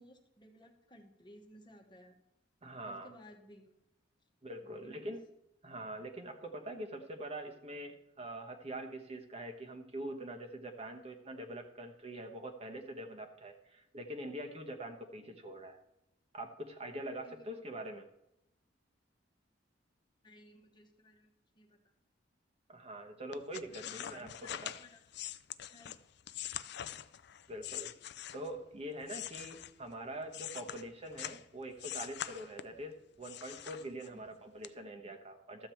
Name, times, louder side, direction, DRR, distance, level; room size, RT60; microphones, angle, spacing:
voice 1, 0.0-2.2 2.8-3.7 4.6-5.1 17.2-17.4 20.2-21.9 23.7-25.0 25.7-25.9 34.1-34.4, left 1 dB, 25° left, 3 dB, 1.3 m, -58 dB
voice 2, 2.6-3.1 4.4-5.2 5.6-15.8 16.3-18.1 22.7-24.7 27.5-27.9 28.3-35.7, right 1 dB, 35° right, 4 dB, 1.1 m, -44 dB
sound 1, 23.3-28.6 29.0-31.4 31.8-32.8 33.2-34.3 34.6-34.7, left 11 dB, 60° left, 0.5 m, -44 dB
13.0 x 7.7 x 4.5 m, 0.87 s
head